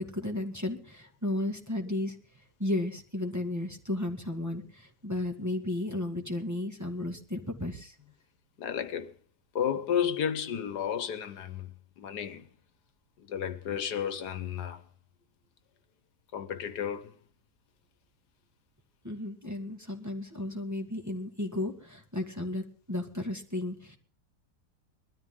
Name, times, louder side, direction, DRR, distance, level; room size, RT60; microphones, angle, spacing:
voice 1, 0.0-2.2 2.6-7.9 19.0-24.0, left 1 dB, 10° right, 1.9 m, -34 dB
voice 2, 8.6-9.2 9.5-12.5 13.2-14.8 16.3-17.2, left 8 dB, 80° left, 1.6 m, -32 dB
21.0 x 13.0 x 3.8 m
omnidirectional pair, 1.7 m